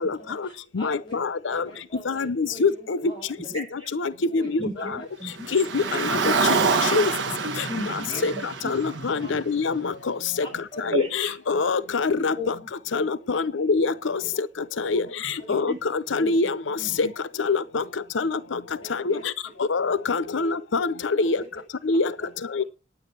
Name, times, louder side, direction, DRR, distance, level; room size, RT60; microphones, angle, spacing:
voice 1, 0.2-1.2 1.5-3.5 4.3-5.0 5.9-6.0 7.7-7.8 8.1-8.3 9.2-9.3 10.4-10.8 14.2-14.3 14.8-15.0 18.8-19.5 20.3-20.4 21.2-21.5, right 1 dB, 25° left, 7.4 m, -43 dB
voice 2, 0.7-1.6 2.1-3.0 3.6-3.7 3.9-4.7 5.5-6.2 6.8-7.1 8.2-8.3 8.6-9.9 10.9-12.3 12.9-14.2 14.8-17.1 17.4-17.8 18.2-18.6 18.9-19.2 19.7-21.4 21.9-22.1 22.6-22.7, left 4 dB, 80° left, 0.6 m, -24 dB
voice 3, 3.5-3.9 4.4-5.5 7.4-8.7 10.9-11.3 12.2-12.5 15.5-15.8 16.2-16.3 16.8-17.1, right 1 dB, 30° right, 7.3 m, -35 dB
Car, 5.4-9.8, right 4 dB, 75° right, 1.3 m, -26 dB
9.7 x 9.5 x 6.8 m
head